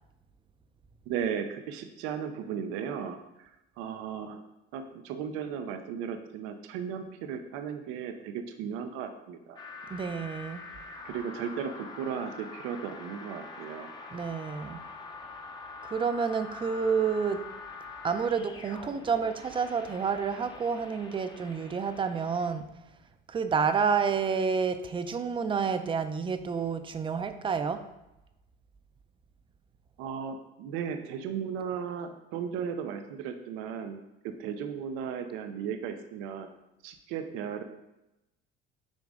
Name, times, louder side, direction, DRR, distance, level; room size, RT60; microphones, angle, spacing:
voice 1, 1.1-4.4 4.7-9.6 11.0-13.9 30.0-36.5 36.8-37.6, right 7 dB, 85° right, 7 dB, 0.7 m, -36 dB
sound 1, 9.6-22.5, left 3 dB, 20° left, 0.8 m, -45 dB
voice 2, 9.9-10.6 14.1-14.8 15.8-17.4 18.0-22.7 23.3-27.8, right 6 dB, 25° right, 9 dB, 0.5 m, -29 dB
7.6 x 5.0 x 3.7 m, 0.94 s
cardioid pair, 130°, 21 cm